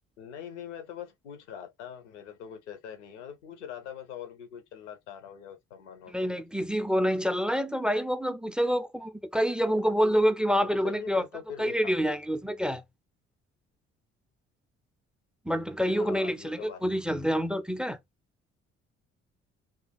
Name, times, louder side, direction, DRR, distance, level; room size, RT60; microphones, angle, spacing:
voice 1, 0.2-6.4 10.6-12.0 15.9-16.8, left 8 dB, 75° left, 0.9 m, -43 dB
voice 2, 6.1-11.2 11.6-12.8 15.5-18.0, equal, 5° right, 0.3 m, -27 dB
2.7 x 2.5 x 4.0 m
figure-of-eight pair, 45°, 36 cm